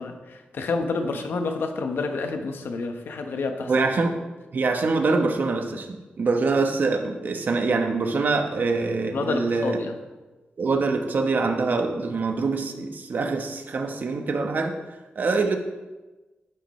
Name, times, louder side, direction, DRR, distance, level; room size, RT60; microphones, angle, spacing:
voice 1, 0.0-3.7 9.1-10.0, left 3 dB, 75° left, 5 dB, 1.1 m, -29 dB
voice 2, 3.7-4.2 4.5-9.8 10.6-14.7 15.2-15.6, right 3 dB, 55° right, 5 dB, 1.0 m, -24 dB
12.0 x 9.3 x 3.2 m, 1.2 s
wide cardioid pair, 120°, 4 cm